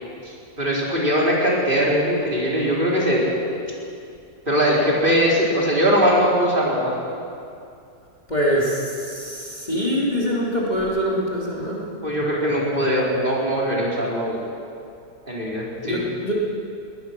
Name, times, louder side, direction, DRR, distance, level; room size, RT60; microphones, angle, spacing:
voice 1, 0.2-3.3 4.5-7.0 12.0-14.4 15.3-16.0, equal, 30° right, -4 dB, 4.3 m, -21 dB
voice 2, 8.3-11.9 15.8-16.3, equal, 25° left, -4 dB, 3.0 m, -24 dB
22.0 x 19.5 x 6.0 m, 2.4 s
omnidirectional pair, 1.7 m